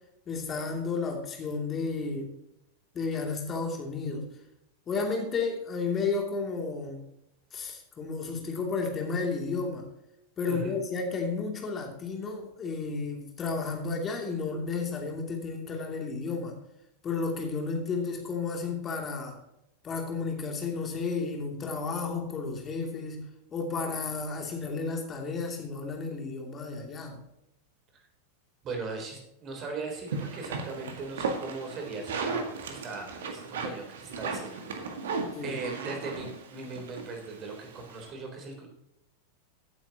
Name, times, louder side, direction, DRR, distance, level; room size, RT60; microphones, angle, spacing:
voice 1, 0.3-2.3 2.9-4.3 4.9-7.0 7.5-9.9 10.4-16.6 17.0-19.4 19.8-27.2 35.3-35.6, left 4 dB, 25° left, 2 dB, 2.7 m, -32 dB
voice 2, 10.5-10.8 27.9-28.0 28.6-38.7, right 3 dB, 30° right, 3 dB, 3.6 m, -39 dB
sound 1, 30.1-38.1, right 4 dB, 60° right, 1.8 m, -36 dB
15.5 x 8.9 x 2.9 m, 0.84 s
figure-of-eight pair, 90°, 0 cm